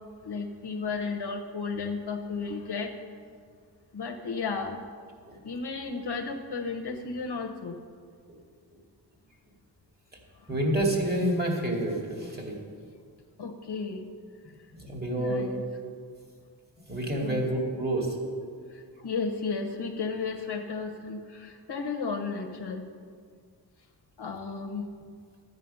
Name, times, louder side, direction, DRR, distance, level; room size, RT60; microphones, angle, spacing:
voice 1, 0.2-2.9 3.9-4.8 5.4-7.7 13.4-14.0 15.2-15.6 17.2-17.5 19.0-22.8 24.2-24.9, left 4 dB, 70° left, 4 dB, 1.1 m, -33 dB
voice 2, 10.5-12.6 14.7-15.5 16.9-18.2, right 1 dB, 25° right, 0 dB, 2.4 m, -28 dB
12.5 x 8.5 x 5.6 m, 2.1 s
wide cardioid pair, 80°, 41 cm